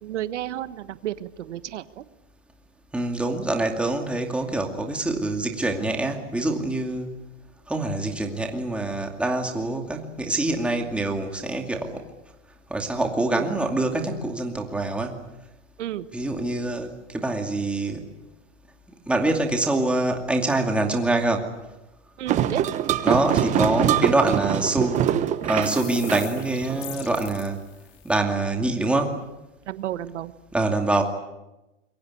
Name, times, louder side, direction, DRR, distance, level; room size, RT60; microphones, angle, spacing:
voice 1, 0.0-2.0 13.3-13.5 15.8-16.1 22.2-22.7 29.7-30.3, right 12 dB, 70° right, 13 dB, 1.5 m, -32 dB
voice 2, 2.9-7.1 7.7-12.0 12.7-15.2 16.1-18.1 19.1-21.5 23.0-25.1 25.4-27.6 28.0-29.2 30.5-31.0, right 2 dB, 5° right, 3 dB, 2.4 m, -25 dB
sound 1, 22.3-27.1, right 10 dB, 20° right, 1.1 m, -24 dB
sound 2, 25.6-28.1, left 13 dB, 45° left, 3.4 m, -42 dB
26.5 x 23.0 x 8.5 m, 0.97 s
hypercardioid pair, 155°, 37 cm